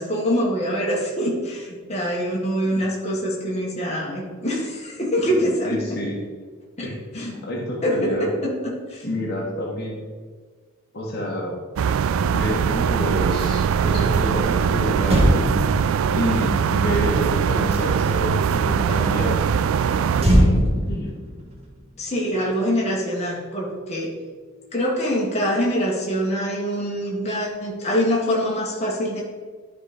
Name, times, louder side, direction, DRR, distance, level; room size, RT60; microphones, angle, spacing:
voice 1, 0.0-5.8 6.8-6.9 7.1-7.3 7.8-9.1 22.0-24.1 24.7-29.2, equal, 30° left, -4 dB, 1.7 m, -24 dB
voice 2, 5.3-6.2 6.8-8.3 9.0-10.0 10.9-11.6 12.3-15.5 16.1-19.4 20.3-20.5 20.8-21.1, left 1 dB, 50° left, -2 dB, 1.6 m, -28 dB
sound 1, 11.8-20.2, right 7 dB, 70° right, 0.3 m, -21 dB
Motor vehicle (road), 15.0-18.5 20.2-22.8 23.0-23.3, equal, 30° right, 1.6 m, -23 dB
10.5 x 4.3 x 5.2 m, 1.5 s
head